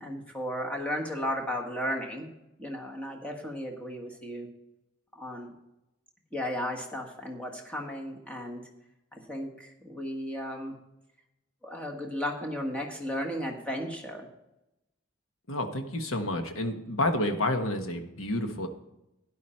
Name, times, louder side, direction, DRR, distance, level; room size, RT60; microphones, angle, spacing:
voice 1, 0.0-2.3 2.6-4.5 5.1-5.5 6.3-8.7 9.1-10.7 11.6-14.3, equal, 5° left, 0 dB, 1.5 m, -34 dB
voice 2, 15.5-18.7, left 1 dB, 70° left, 6 dB, 1.3 m, -29 dB
12.0 x 10.0 x 4.4 m, 0.90 s
head